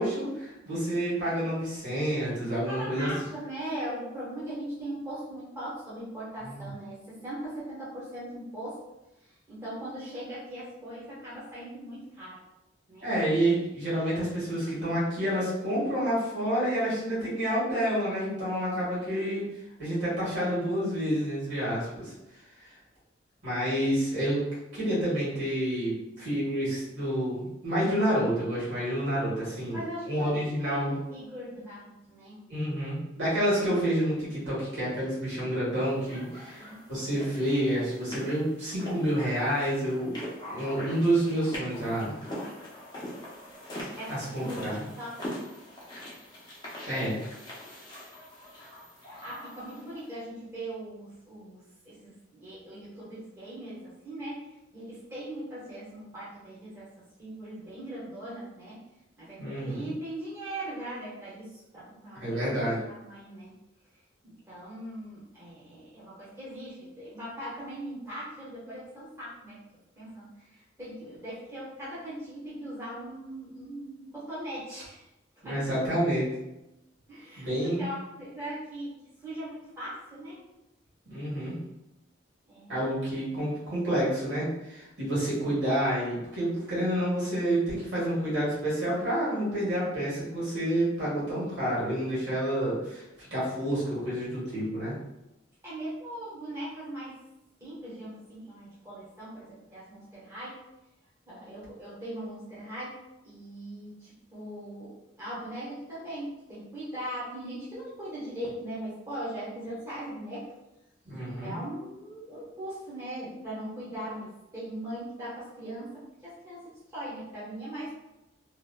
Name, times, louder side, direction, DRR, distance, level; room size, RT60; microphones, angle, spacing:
voice 1, 0.0-3.1 6.4-6.6 13.0-19.5 19.8-22.1 22.6-22.7 23.4-24.5 24.7-29.8 30.0-30.9 32.5-36.6 36.9-40.2 40.5-42.2 44.1-44.9 46.9-47.2 59.4-59.8 62.1-62.8 75.4-76.3 77.4-77.9 81.1-81.5 82.7-93.0 93.3-94.9 111.0-111.5, right 1 dB, 65° right, -8 dB, 1.5 m, -29 dB
voice 2, 2.7-8.8 9.5-12.4 12.9-13.1 18.9-19.1 29.7-32.4 36.4-36.7 43.9-44.7 45.0-45.2 49.0-51.6 51.8-56.9 57.2-58.8 59.2-63.5 64.2-69.6 69.9-75.1 75.4-75.7 77.1-78.9 79.2-80.4 82.5-82.7 95.6-97.2 97.6-100.6 101.3-103.0 103.2-110.4 111.4-117.9, right 1 dB, 15° right, -10 dB, 1.0 m, -40 dB
sound 1, 36.1-50.1, equal, 20° left, 0.7 m, -42 dB
2.9 x 2.5 x 2.2 m, 0.93 s
head